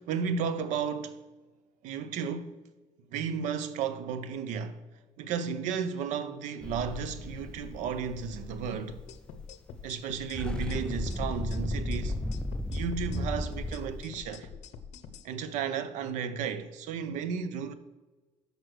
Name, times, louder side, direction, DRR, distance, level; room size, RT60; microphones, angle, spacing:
voice 1, 0.0-1.3 1.8-2.5 3.1-4.8 5.2-9.0 9.8-12.2 12.7-14.5 15.2-17.7, right 6 dB, 80° right, 0.6 m, -33 dB
sound 1, 6.6-9.5 9.8-9.9 10.2-14.0, left 1 dB, 5° left, 0.4 m, -35 dB
sound 2, 8.9-15.3, left 6 dB, 65° left, 0.6 m, -46 dB
6.3 x 5.1 x 6.2 m
cardioid pair, 125°, 12 cm